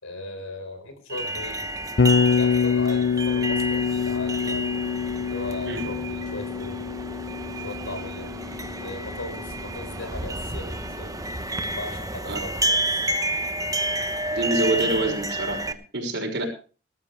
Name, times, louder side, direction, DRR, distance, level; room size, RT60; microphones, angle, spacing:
voice 1, 0.0-1.6 2.4-4.8 5.3-6.9 7.6-8.3 8.8-11.2 11.7-13.0, left 2 dB, 85° left, 7 dB, 4.7 m, -37 dB
sound 1, 1.1-15.7, right 1 dB, 20° right, 0.9 m, -30 dB
Bass guitar, 2.0-10.1, left 6 dB, 50° left, 0.6 m, -26 dB
voice 2, 14.3-16.4, right 2 dB, 60° right, 1 dB, 6.0 m, -27 dB
19.5 x 13.5 x 3.4 m, 0.37 s
head